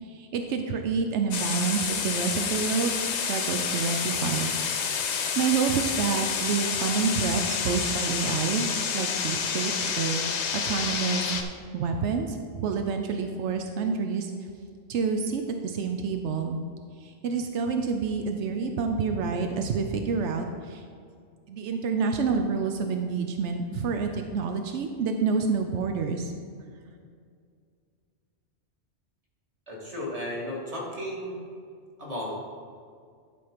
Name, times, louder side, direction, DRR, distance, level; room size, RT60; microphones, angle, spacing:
voice 1, 0.0-4.5 5.1-8.7 8.9-11.4 11.7-14.3 14.9-16.6 17.0-20.8 21.5-26.3, right 5 dB, 85° right, 5 dB, 0.9 m, -28 dB
sound 1, 1.3-11.4, left 6 dB, 80° left, 1.0 m, -29 dB
voice 2, 29.7-31.4 32.0-32.5, left 1 dB, 30° right, -4 dB, 1.9 m, -34 dB
11.5 x 4.3 x 5.0 m, 2.2 s
omnidirectional pair, 1.2 m